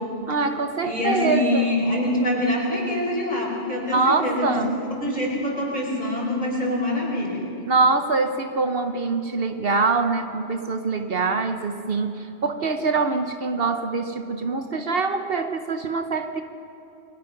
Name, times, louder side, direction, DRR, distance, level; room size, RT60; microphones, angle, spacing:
voice 1, 0.3-1.7 3.9-4.8 7.7-16.4, right 4 dB, 60° right, 7 dB, 1.1 m, -24 dB
voice 2, 0.8-4.4 4.9-7.4, left 1 dB, 40° left, -2 dB, 5.2 m, -25 dB
29.0 x 22.0 x 5.9 m, 2.9 s
omnidirectional pair, 1.1 m